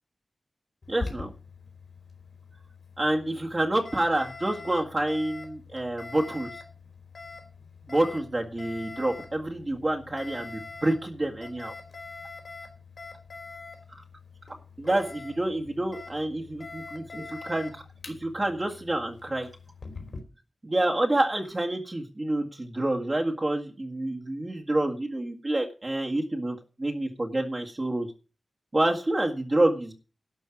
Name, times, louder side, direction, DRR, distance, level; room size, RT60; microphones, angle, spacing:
Alarm, 0.8-20.2, left 4 dB, 65° left, 3.4 m, -44 dB
voice 1, 0.9-1.3 3.0-6.5 7.9-11.7 14.8-19.5 20.6-28.1 28.7-29.9, right 1 dB, 30° right, 0 dB, 1.9 m, -28 dB
12.0 x 5.6 x 9.0 m, 0.35 s
wide cardioid pair, 120°, 0 cm